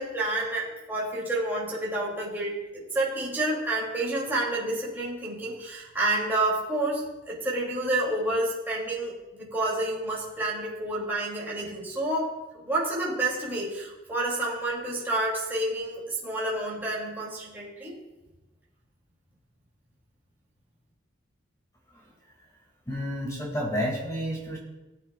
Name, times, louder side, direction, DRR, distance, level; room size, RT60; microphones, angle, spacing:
voice 1, 0.0-18.0, right 2 dB, 10° right, -6 dB, 2.8 m, -29 dB
voice 2, 22.9-24.6, equal, 15° left, -2 dB, 2.4 m, -30 dB
19.5 x 8.8 x 2.5 m, 1.1 s
head